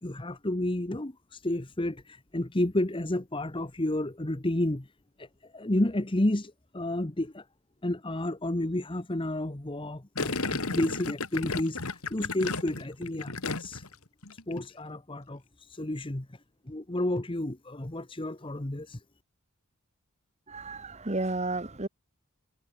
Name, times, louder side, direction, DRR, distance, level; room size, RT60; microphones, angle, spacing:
voice 1, 0.0-4.9 5.2-7.4 7.8-13.9 14.5-16.4 16.7-19.0, left 1 dB, 25° left, 1.1 m, -31 dB
Gurgling, 10.2-13.9 14.2-14.6, left 3 dB, 80° left, 3.0 m, -33 dB
voice 2, 20.5-21.9, right 2 dB, 30° right, 1.5 m, -32 dB
head